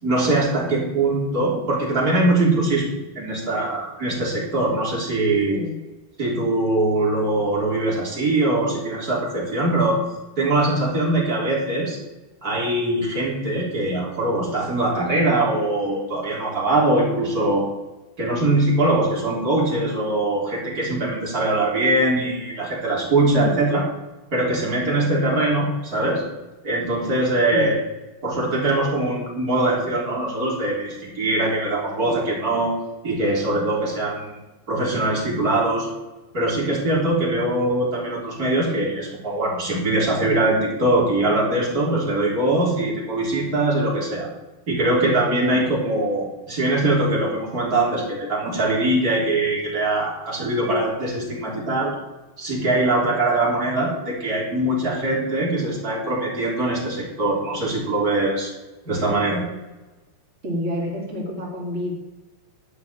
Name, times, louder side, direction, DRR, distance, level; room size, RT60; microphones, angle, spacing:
voice 1, 0.0-5.6 6.2-10.0 10.4-12.0 12.4-17.6 18.2-23.8 24.3-26.2 26.6-27.8 28.2-32.8 33.0-34.4 34.7-35.9 36.3-44.3 44.7-51.9 52.4-58.5 58.8-59.4, right 2 dB, 20° right, -4 dB, 3.2 m, -22 dB
voice 2, 5.5-5.8 23.3-23.6 27.5-27.8 60.4-61.9, left 1 dB, 45° right, -3 dB, 0.9 m, -28 dB
12.0 x 5.9 x 9.1 m, 1.1 s
omnidirectional pair, 5.6 m